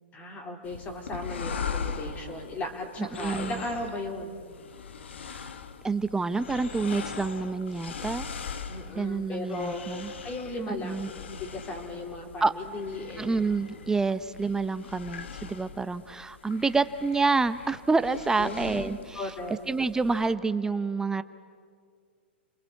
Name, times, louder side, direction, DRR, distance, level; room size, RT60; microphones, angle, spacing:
voice 1, 0.1-4.4 8.7-9.9 10.2-13.3 18.4-19.6, left 2 dB, 25° left, 2 dB, 3.8 m, -36 dB
sound 1, 0.6-20.3, left 6 dB, 80° left, 1.6 m, -40 dB
voice 2, 3.0-3.6 5.3-5.5 5.8-8.3 8.9-10.1 10.7-11.1 12.4-12.5 13.2-19.3 19.7-21.2, right 4 dB, 10° right, 13 dB, 0.7 m, -28 dB
29.5 x 21.0 x 8.4 m, 2.1 s
hypercardioid pair, 120°, 6 cm